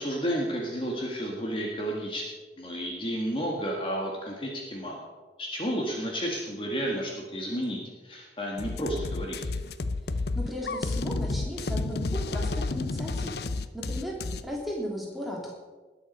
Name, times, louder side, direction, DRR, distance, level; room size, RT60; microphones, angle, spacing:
voice 1, 0.0-2.2 2.6-5.0 5.4-9.5, equal, 30° left, -1 dB, 1.7 m, -32 dB
sound 1, 8.6-14.4, left 3 dB, 60° left, 0.6 m, -31 dB
voice 2, 10.1-15.5, equal, ahead, -3 dB, 2.8 m, -36 dB
20.0 x 7.3 x 5.3 m, 1.3 s
head